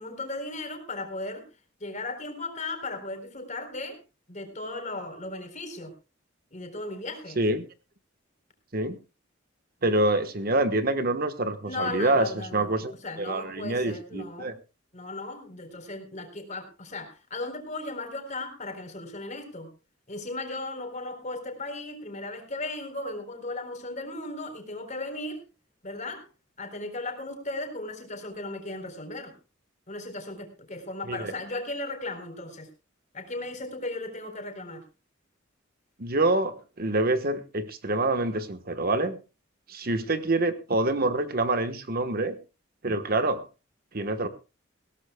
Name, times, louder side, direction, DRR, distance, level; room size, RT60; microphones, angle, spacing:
voice 1, 0.0-1.5 1.8-4.0 4.3-5.9 6.5-7.4 11.6-14.5 14.9-19.7 20.1-25.4 25.8-26.2 26.6-29.4 29.9-32.7 33.1-34.8, left 2 dB, 40° left, 7 dB, 4.0 m, -36 dB
voice 2, 7.4-7.7 8.7-9.0 9.8-12.9 13.2-14.5 31.1-31.3 36.0-39.2 39.7-42.4 42.8-43.4 43.9-44.3, right 2 dB, 50° right, 10 dB, 1.3 m, -26 dB
20.5 x 17.0 x 2.3 m, 0.30 s
head